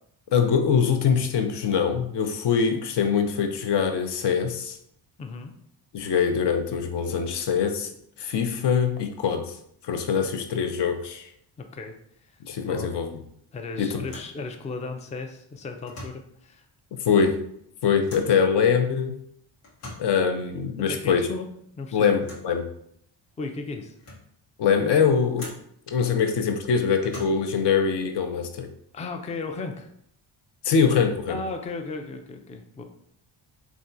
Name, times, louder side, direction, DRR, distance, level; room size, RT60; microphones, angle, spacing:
voice 1, 0.3-4.8 5.9-7.9 8.2-9.6 9.8-11.3 12.5-13.2 13.8-14.0 17.0-17.4 17.8-19.2 20.0-21.3 21.9-22.6 24.6-25.5 25.9-28.7 30.6-31.4, left 6 dB, 55° left, 6 dB, 0.6 m, -23 dB
voice 2, 5.2-5.5 11.6-11.9 12.6-12.9 13.5-16.7 20.9-21.5 21.8-22.1 23.4-24.0 28.9-29.9 31.3-32.8, left 3 dB, 15° left, 5 dB, 0.3 m, -35 dB
sound 1, 14.0-14.4 15.8-16.3 18.1-18.4 19.6-20.2 22.2-22.5 23.3-23.4 23.8-24.3 25.3-25.8 27.0-27.6, left 2 dB, 90° left, 1.1 m, -43 dB
3.4 x 2.3 x 2.6 m, 0.68 s
supercardioid pair, 60°, 49 cm